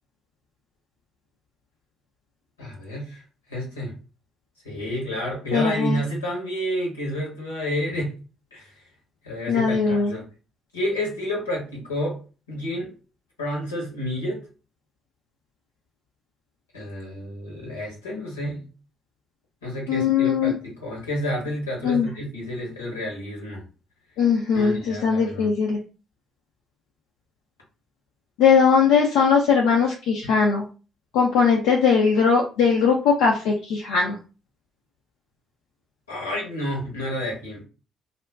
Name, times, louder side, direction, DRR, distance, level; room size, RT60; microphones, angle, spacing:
voice 1, 2.6-3.2 3.5-3.9 4.6-8.1 8.5-8.7 9.2-10.2 10.7-12.2 12.5-12.9 13.4-14.4 16.7-18.7 19.6-23.6 24.5-25.5 36.1-37.6, equal, 85° left, -2 dB, 1.0 m, -30 dB
voice 2, 5.5-6.0 9.5-10.1 19.9-20.5 21.8-22.1 24.2-25.8 28.4-30.6 31.1-34.2, left 6 dB, 70° left, -1 dB, 0.4 m, -20 dB
2.4 x 2.1 x 3.4 m, 0.35 s
figure-of-eight pair, 45°, 0 cm